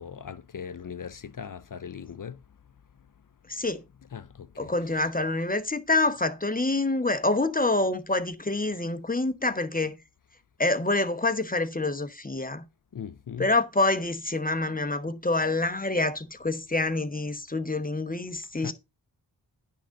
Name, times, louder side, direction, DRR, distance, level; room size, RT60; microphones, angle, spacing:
voice 1, 0.0-2.4 4.1-5.1 12.9-13.5 18.6-18.7, left 7 dB, 50° left, 0.6 m, -39 dB
voice 2, 3.5-3.8 4.6-10.0 10.6-12.7 13.4-18.7, left 2 dB, 20° left, 1.0 m, -27 dB
10.0 x 3.8 x 6.5 m
wide cardioid pair, 65°, 41 cm